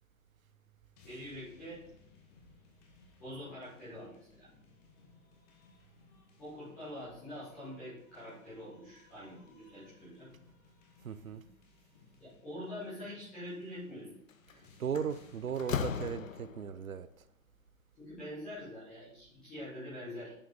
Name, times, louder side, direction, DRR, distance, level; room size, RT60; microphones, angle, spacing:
sound 1, 1.0-15.9, left 5 dB, 30° left, 1.2 m, -62 dB
voice 1, 1.0-1.8 3.2-4.5 6.4-10.3 12.2-14.1 18.0-20.3, left 1 dB, ahead, 0.4 m, -45 dB
voice 2, 11.0-11.4 14.5-17.1, right 7 dB, 75° right, 0.6 m, -37 dB
Slam, 14.3-14.5 15.0-16.8, left 7 dB, 70° left, 0.6 m, -37 dB
9.9 x 4.6 x 3.5 m
figure-of-eight pair, 120°, 42 cm